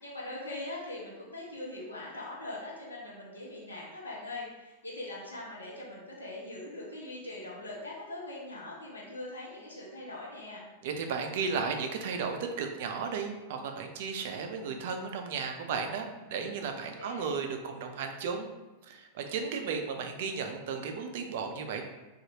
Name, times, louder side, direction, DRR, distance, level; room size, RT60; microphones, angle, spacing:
voice 1, 0.0-10.6 16.8-17.4, left 2 dB, 80° left, -5 dB, 0.8 m, -41 dB
voice 2, 10.8-18.5 18.9-21.8, right 5 dB, 55° right, 5 dB, 0.3 m, -34 dB
2.7 x 2.4 x 2.8 m, 1.1 s
figure-of-eight pair, 90°, 0 cm